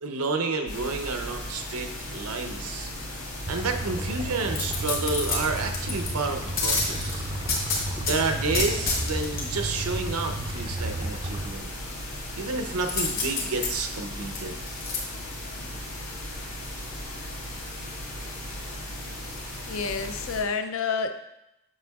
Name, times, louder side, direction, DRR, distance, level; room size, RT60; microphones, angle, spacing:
voice 1, 0.0-2.9 3.5-7.2 8.0-11.7 12.4-14.6, right 3 dB, 80° right, 5 dB, 0.7 m, -30 dB
sound 1, 0.7-20.4, left 1 dB, 80° left, 1.6 m, -37 dB
sound 2, 3.5-11.5, right 1 dB, 20° right, 0.4 m, -33 dB
sound 3, 4.5-6.1 6.6-8.2 8.5-9.4 12.9-15.0 15.4-15.5, left 4 dB, 45° left, 1.2 m, -28 dB
voice 2, 19.7-21.1, left 5 dB, 60° left, 8 dB, 0.5 m, -29 dB
7.3 x 5.9 x 2.3 m, 0.88 s
head